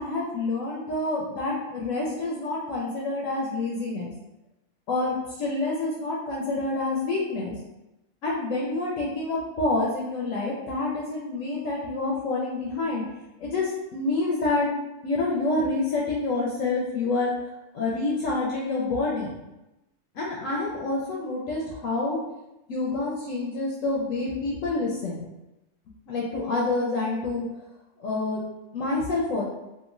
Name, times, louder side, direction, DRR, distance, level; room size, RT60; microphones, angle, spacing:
voice 1, 0.0-4.1 4.9-7.5 8.2-13.0 13.4-14.7 15.0-19.3 20.1-22.2 22.7-25.2 26.1-27.4 28.0-28.5 28.7-29.4, left 2 dB, 70° left, -4 dB, 0.9 m, -27 dB
2.9 x 2.4 x 2.4 m, 0.95 s
omnidirectional pair, 1.5 m